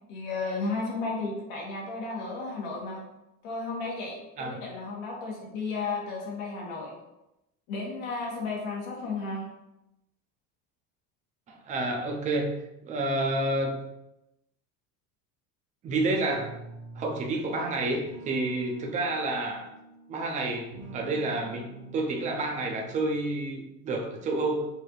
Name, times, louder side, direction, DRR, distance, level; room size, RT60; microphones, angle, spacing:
voice 1, 0.1-3.0 3.4-6.9 7.7-9.5, left 3 dB, 90° left, -3 dB, 1.6 m, -33 dB
voice 2, 11.5-12.5 12.8-13.8 15.8-16.5 17.0-19.7 20.1-21.7 21.9-24.7, right 2 dB, 20° right, 2 dB, 0.4 m, -29 dB
sound 1, 16.3-17.4 18.0-20.3 20.7-23.3, right 3 dB, 65° right, 1.2 m, -46 dB
6.5 x 2.6 x 3.0 m, 0.89 s
cardioid pair, 180°, 37 cm